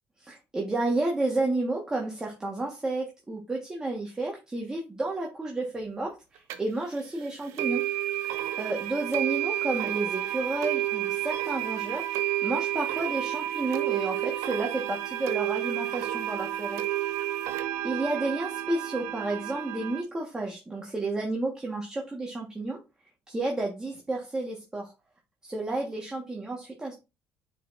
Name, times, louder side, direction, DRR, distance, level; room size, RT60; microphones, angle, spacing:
voice 1, 0.3-7.8 8.6-12.0 12.4-16.8 17.8-22.8 23.3-24.9 25.4-26.9, right 2 dB, 15° right, -1 dB, 1.5 m, -31 dB
sound 1, 6.5-6.6 7.6-20.0, right 14 dB, 90° right, 0.8 m, -30 dB
9.0 x 4.6 x 2.6 m, 0.26 s
cardioid pair, 120°, 5 cm